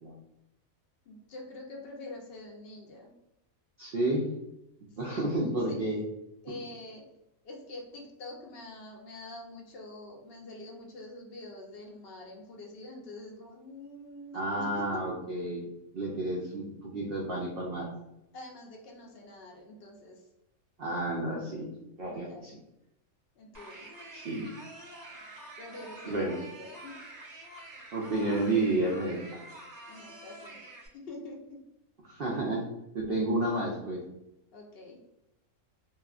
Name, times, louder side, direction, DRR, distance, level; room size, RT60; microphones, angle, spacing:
voice 1, 1.1-3.1 4.9-5.3 5.7-5.8 6.4-7.0 7.4-14.7 16.0-16.1 18.3-20.3 22.0-22.4 23.4-23.9 25.6-27.1 29.9-30.6 31.1-31.6 34.5-35.0, left 2 dB, 60° left, -1 dB, 0.6 m, -46 dB
voice 2, 3.8-4.3 5.0-6.0 6.5-6.6 14.3-15.6 15.9-17.9 20.8-21.7 22.0-22.6 24.1-24.5 26.1-26.4 27.9-29.5 32.1-32.7 32.9-34.0, right 2 dB, 80° right, -2 dB, 0.5 m, -31 dB
sound 1, 23.5-30.9, right 1 dB, 35° right, 0.8 m, -47 dB
2.9 x 2.3 x 2.3 m, 0.86 s
omnidirectional pair, 1.5 m